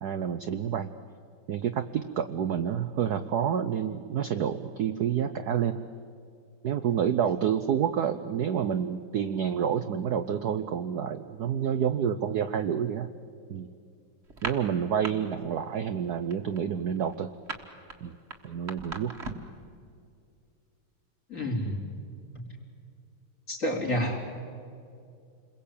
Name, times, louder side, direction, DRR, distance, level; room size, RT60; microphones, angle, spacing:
voice 1, 0.0-0.9 1.5-5.8 6.6-13.1 13.5-13.7 14.4-17.3 18.0-18.1 18.4-19.1, right 8 dB, 60° right, 10 dB, 1.1 m, -28 dB
sound 1, 14.3-15.1 15.4-15.7 16.0-19.6, right 3 dB, 30° right, 1.8 m, -38 dB
voice 2, 21.3-21.7 23.5-24.2, equal, 35° left, 0 dB, 4.5 m, -29 dB
29.0 x 21.5 x 8.6 m, 2.5 s
omnidirectional pair, 2.4 m